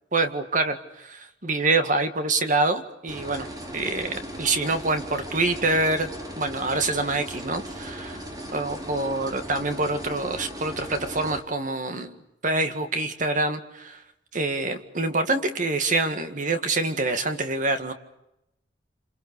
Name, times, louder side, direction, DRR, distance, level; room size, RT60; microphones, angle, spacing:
voice 1, 0.1-3.5 3.7-6.1 6.4-8.1 8.5-14.0 14.3-17.9, right 2 dB, 45° right, 7 dB, 1.9 m, -26 dB
sound 1, 3.1-11.4, equal, 20° right, 3.3 m, -37 dB
27.5 x 27.5 x 6.8 m, 0.87 s
head